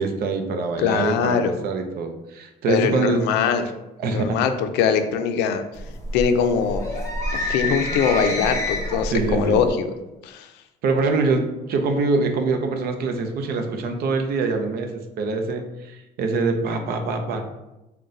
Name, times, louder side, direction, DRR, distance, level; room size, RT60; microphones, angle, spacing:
voice 1, 0.0-3.2 4.0-4.4 9.1-9.6 10.8-17.4, right 3 dB, 65° right, 5 dB, 0.6 m, -24 dB
voice 2, 0.8-1.5 2.7-3.6 4.1-5.6 6.1-6.9 7.3-9.9 10.2-10.5, left 7 dB, 90° left, 8 dB, 0.4 m, -22 dB
sound 1, 5.7-9.7, left 1 dB, 20° left, 1.1 m, -28 dB
3.9 x 2.2 x 3.8 m, 0.99 s
cardioid pair, 110°, 17 cm